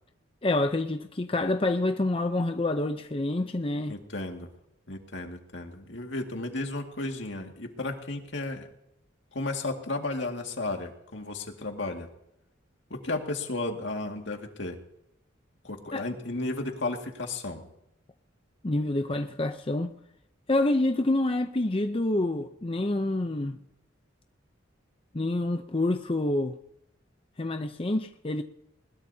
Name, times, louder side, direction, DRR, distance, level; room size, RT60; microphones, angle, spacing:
voice 1, 0.4-3.9 15.9-16.1 18.6-19.9 20.5-23.6 25.1-26.5 27.4-28.4, left 2 dB, 30° left, 0.7 m, -27 dB
voice 2, 3.9-4.5 4.9-8.7 9.3-12.1 12.9-14.8 15.6-17.7, left 2 dB, 65° left, 2.2 m, -33 dB
21.5 x 20.5 x 2.8 m
head